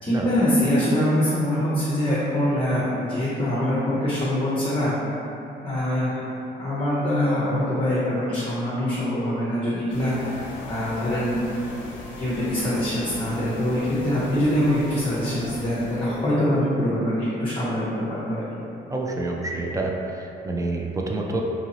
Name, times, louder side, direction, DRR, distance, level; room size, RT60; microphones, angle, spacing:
voice 1, 0.0-4.9 5.6-6.2 6.6-11.4 11.8-18.4, equal, 25° left, -8 dB, 0.6 m, -24 dB
sound 1, 9.9-16.3, left 2 dB, 75° left, 0.5 m, -39 dB
voice 2, 18.9-21.4, right 2 dB, 15° right, 0 dB, 0.3 m, -28 dB
2.9 x 2.7 x 2.7 m, 2.8 s
cardioid pair, 90°, 20 cm